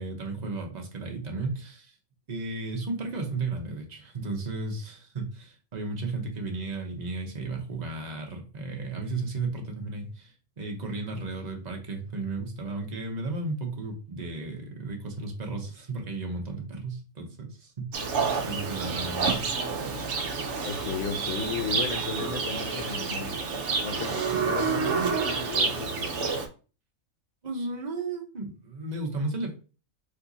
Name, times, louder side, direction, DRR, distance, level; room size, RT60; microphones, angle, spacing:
voice 1, 0.0-1.9 2.3-17.9 18.4-19.5 19.9-20.0 27.4-29.6, right 3 dB, 35° right, 0.9 m, -34 dB
Livestock farm animals working animals, 17.9-26.5, right 5 dB, 60° right, 1.0 m, -29 dB
voice 2, 20.6-23.4 23.8-26.3, left 5 dB, 65° left, 0.9 m, -35 dB
4.4 x 2.8 x 3.9 m
omnidirectional pair, 1.4 m